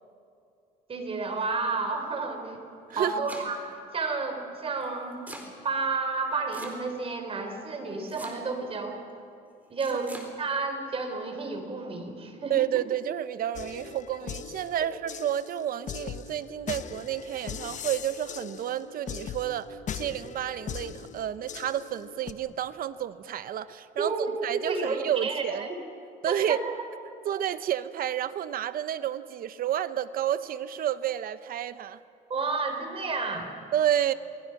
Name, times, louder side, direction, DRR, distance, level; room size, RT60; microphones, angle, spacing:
voice 1, 0.9-2.6 3.0-3.6 3.9-5.2 5.6-9.0 9.7-12.5 24.0-25.8 26.2-26.8 32.3-33.5, right 4 dB, 35° right, 4 dB, 4.0 m, -31 dB
Domestic sounds home sounds, 2.7-3.8 4.8-5.5 6.5-7.1 8.1-8.7 9.8-10.3, right 1 dB, 10° right, 3.9 m, -44 dB
voice 2, 12.5-25.7 26.2-26.6 27.2-32.0 33.7-34.1, right 11 dB, 60° right, 14 dB, 0.8 m, -30 dB
sound 1, 13.6-22.3, left 8 dB, 45° left, 1.0 m, -40 dB
29.0 x 21.0 x 6.0 m, 2.6 s
cardioid pair, 110°, 17 cm